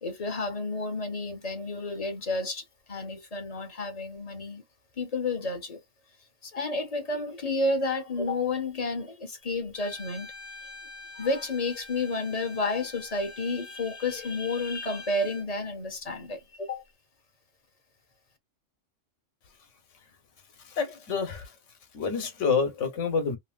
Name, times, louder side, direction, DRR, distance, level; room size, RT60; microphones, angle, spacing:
voice 1, 0.0-4.6 5.0-5.8 6.4-10.3 10.6-10.7 11.1-16.8, left 2 dB, 35° left, 0.8 m, -31 dB
Bowed string instrument, 9.7-15.5, left 3 dB, 10° right, 0.7 m, -46 dB
voice 2, 20.7-21.5 21.9-23.4, left 5 dB, 90° left, 1.2 m, -28 dB
2.9 x 2.7 x 2.4 m
omnidirectional pair, 1.2 m